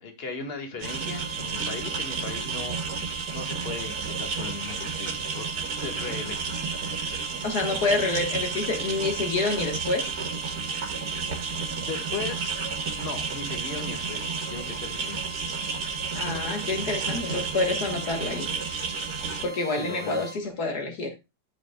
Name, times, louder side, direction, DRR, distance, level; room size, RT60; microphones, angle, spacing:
voice 1, 0.0-2.8 3.3-6.5 11.8-12.6 13.0-15.4 19.8-20.3, left 4 dB, 35° left, 2.0 m, -37 dB
sound 1, 0.8-20.4, right 5 dB, 45° right, 1.9 m, -42 dB
sound 2, 0.8-19.4, right 5 dB, 65° right, 2.1 m, -32 dB
voice 2, 7.4-10.1 16.1-18.9 19.4-21.1, left 3 dB, 65° left, 1.9 m, -28 dB
12.5 x 6.4 x 2.2 m
omnidirectional pair, 1.8 m